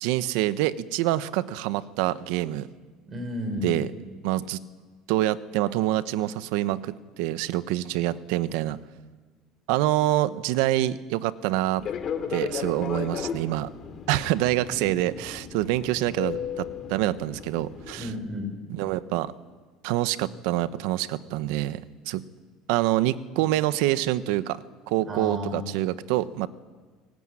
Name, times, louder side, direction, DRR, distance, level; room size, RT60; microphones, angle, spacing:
voice 1, 0.0-2.7 3.6-3.9 4.2-4.6 5.1-8.8 9.7-11.9 12.3-13.7 14.1-18.1 18.7-19.3 19.8-21.8 22.1-22.2 22.7-24.6 24.9-26.5, right 15 dB, 80° right, 15 dB, 1.0 m, -26 dB
voice 2, 3.1-3.8 14.8-14.9 18.0-18.5 25.1-25.7, left 1 dB, 25° right, 5 dB, 5.8 m, -32 dB
Fixed-wing aircraft airplane, 11.8-18.2, left 7 dB, 40° left, 2.9 m, -35 dB
24.5 x 18.5 x 9.9 m, 1.4 s
cardioid pair, 140°, 0 cm